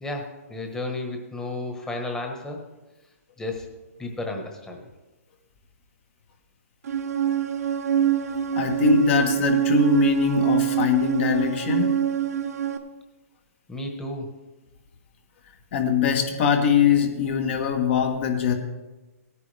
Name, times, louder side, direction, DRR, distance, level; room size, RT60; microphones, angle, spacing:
voice 1, 0.0-2.6 3.4-3.6 4.0-4.8 13.7-14.3, left 2 dB, 5° left, 2 dB, 1.3 m, -32 dB
sound 1, 6.9-12.8, right 9 dB, 75° right, 1.1 m, -24 dB
voice 2, 8.5-12.0 15.7-18.5, left 6 dB, 50° left, 5 dB, 1.5 m, -22 dB
17.0 x 9.6 x 3.4 m, 1.1 s
hypercardioid pair, 150°, 9 cm